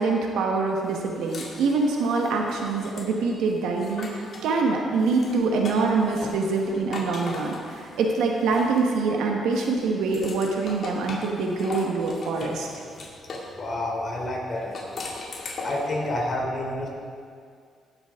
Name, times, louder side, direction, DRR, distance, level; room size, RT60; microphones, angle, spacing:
voice 1, 0.0-12.7, right 4 dB, 85° right, 1 dB, 1.4 m, -25 dB
sound 1, 0.8-4.5 4.9-9.1 9.5-13.5 14.6-16.0, left 3 dB, 55° left, 2.5 m, -39 dB
voice 2, 13.5-15.2 15.6-16.9, left 1 dB, 40° left, -1 dB, 3.2 m, -29 dB
17.5 x 8.0 x 3.7 m, 2.2 s
cardioid pair, 90°, 0 cm